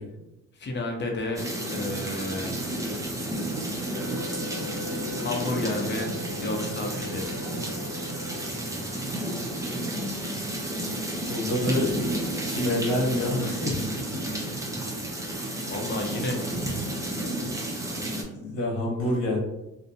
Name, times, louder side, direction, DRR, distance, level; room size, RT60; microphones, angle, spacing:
voice 1, 0.5-1.4 1.7-2.6 5.2-6.1 6.4-7.4 15.7-16.4, left 2 dB, 35° left, 2 dB, 0.6 m, -31 dB
sound 1, 1.4-18.2, right 1 dB, 10° right, 0.5 m, -31 dB
Wind instrument woodwind instrument, 3.9-9.0, left 4 dB, 45° right, 1.1 m, -42 dB
voice 2, 11.3-11.9 12.4-14.0 15.2-15.6 18.3-19.4, left 1 dB, 85° left, -3 dB, 0.8 m, -27 dB
2.5 x 2.1 x 2.6 m, 0.93 s
cardioid pair, 90°, 30 cm